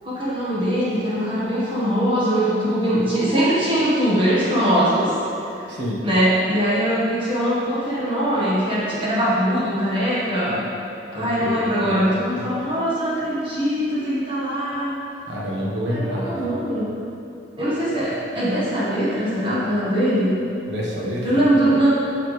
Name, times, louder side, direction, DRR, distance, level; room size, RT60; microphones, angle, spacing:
voice 1, 0.0-5.1 5.6-5.7 6.0-10.6 11.1-14.9 15.8-16.9 17.6-20.3 21.2-21.9, equal, 30° right, -9 dB, 1.6 m, -21 dB
voice 2, 5.7-6.0 11.1-12.0 15.3-16.3 20.7-21.4, equal, 90° right, -4 dB, 1.4 m, -27 dB
9.1 x 5.9 x 3.4 m, 2.8 s
head